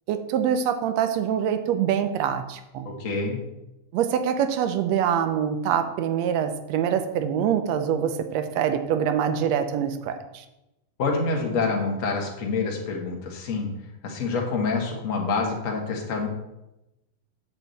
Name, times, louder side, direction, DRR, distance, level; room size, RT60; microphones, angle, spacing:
voice 1, 0.1-2.9 3.9-10.5, right 8 dB, 75° right, 9 dB, 1.7 m, -25 dB
voice 2, 2.8-3.4 11.0-13.7 14.0-16.3, left 4 dB, 45° left, 0 dB, 1.1 m, -27 dB
8.3 x 7.8 x 4.1 m, 0.93 s
omnidirectional pair, 3.6 m